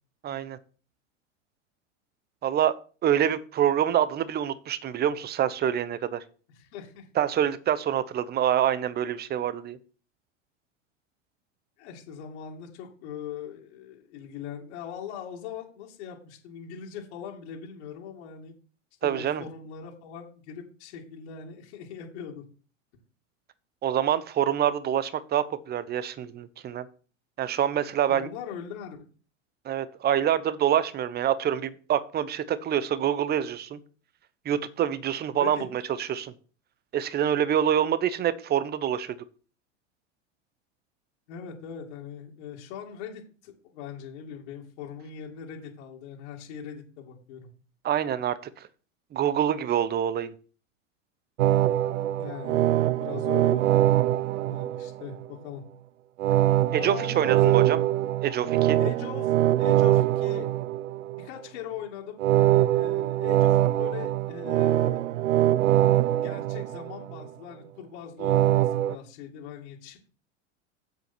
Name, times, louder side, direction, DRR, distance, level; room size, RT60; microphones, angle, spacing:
voice 1, 0.2-0.6 2.4-2.7 3.0-6.2 7.2-9.8 19.0-19.4 23.8-26.9 27.4-28.3 29.6-33.8 34.4-36.3 36.9-39.2 47.8-48.7 49.1-50.3 56.7-57.8 58.2-58.8, right 10 dB, 25° right, 0.8 m, -26 dB
voice 2, 6.5-7.1 11.8-18.5 19.0-22.4 28.1-29.0 35.4-35.6 41.3-47.5 52.2-53.8 54.5-55.6 56.8-57.8 58.8-60.5 61.2-65.0 66.2-70.0, left 8 dB, 60° left, 2.7 m, -40 dB
sound 1, 51.4-55.3 56.2-61.3 62.2-67.3 68.2-69.0, right 13 dB, 70° right, 0.5 m, -23 dB
7.9 x 7.6 x 4.5 m
hypercardioid pair, 95°, 38 cm